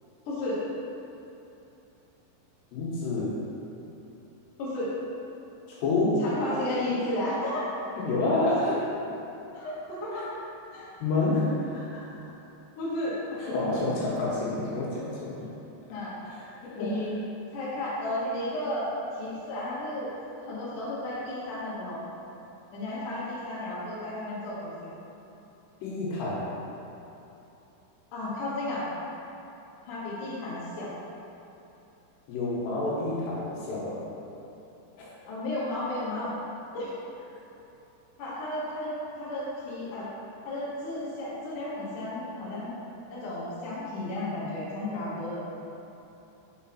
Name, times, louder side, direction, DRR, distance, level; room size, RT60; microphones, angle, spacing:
voice 1, 0.3-0.6 4.6-4.9 6.2-7.8 8.4-8.7 9.5-10.3 10.7-10.9 12.8-13.2 15.9-16.1 16.7-17.1 17.5-18.9 19.2-20.1 20.4-22.0 22.7-24.9 28.1-28.9 29.9-30.9 35.3-36.3 36.7-36.9 38.2-40.1 40.4-42.7 43.1-45.5, left 1 dB, 60° left, -8 dB, 2.6 m, -33 dB
voice 2, 2.7-3.4 5.7-6.2 8.0-8.7 11.0-12.0 13.4-15.5 16.3-16.4 16.8-17.1 25.8-26.5 32.3-34.0 35.0-35.1, left 2 dB, 80° left, -7 dB, 3.3 m, -28 dB
6.6 x 4.7 x 4.3 m, 3.0 s
omnidirectional pair, 5.0 m